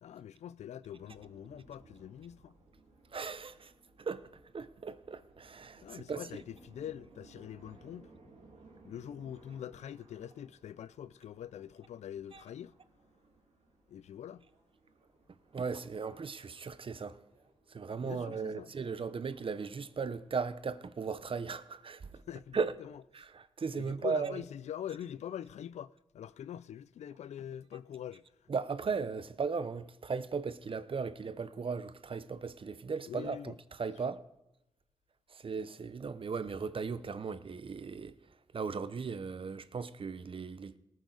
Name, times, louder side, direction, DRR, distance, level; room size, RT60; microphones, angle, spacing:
voice 1, 0.0-2.6 5.8-8.1 8.8-12.7 13.9-14.5 17.9-18.7 22.3-23.0 23.8-28.2 33.1-33.6, left 10 dB, 85° left, 0.4 m, -44 dB
sound 1, 0.9-20.5, right 3 dB, 75° right, 3.0 m, -62 dB
voice 2, 3.1-3.7 4.0-4.3 4.5-6.2 12.3-12.4 15.5-17.2 17.7-22.2 22.5-22.7 23.1-24.3 28.5-34.2 35.3-38.1 38.5-40.7, right 5 dB, 50° right, 0.8 m, -37 dB
18.5 x 9.2 x 3.9 m
cardioid pair, 55°, 11 cm